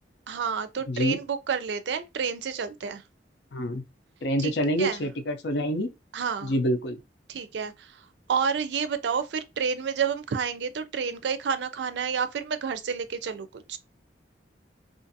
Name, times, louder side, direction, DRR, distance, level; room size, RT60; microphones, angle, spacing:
voice 1, 0.3-3.0 4.4-4.5 4.8-5.0 6.1-6.5 7.3-7.9 8.3-13.8, right 6 dB, 75° right, 0.4 m, -29 dB
voice 2, 0.9-1.2 3.5-3.8 4.2-5.9 6.4-7.0, equal, 70° left, 0.6 m, -26 dB
2.5 x 2.5 x 2.6 m
head